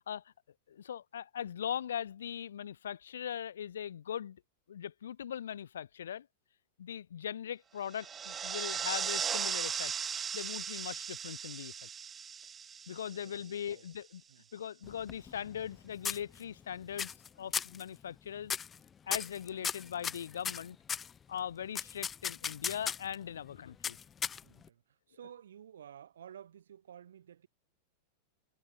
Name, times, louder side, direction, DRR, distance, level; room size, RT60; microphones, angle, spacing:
voice 1, 0.7-4.4 4.7-6.3 6.8-9.9 10.3-11.9 12.9-14.2 14.5-18.5 19.1-20.8 21.3-24.0, left 9 dB, 65° left, 1.3 m, -40 dB
sound 1, 7.9-13.7, right 7 dB, 20° right, 1.2 m, -37 dB
voice 2, 13.1-13.9 14.3-14.5 24.4-27.5, right 9 dB, 65° right, 6.3 m, -53 dB
sound 2, 14.8-15.7 16.0-16.6 17.0-17.3 17.5-17.8 18.4-18.8 19.1-21.1 21.7-23.1 23.8-24.7, left 7 dB, 20° left, 1.4 m, -36 dB
figure-of-eight pair, 90°, 0 cm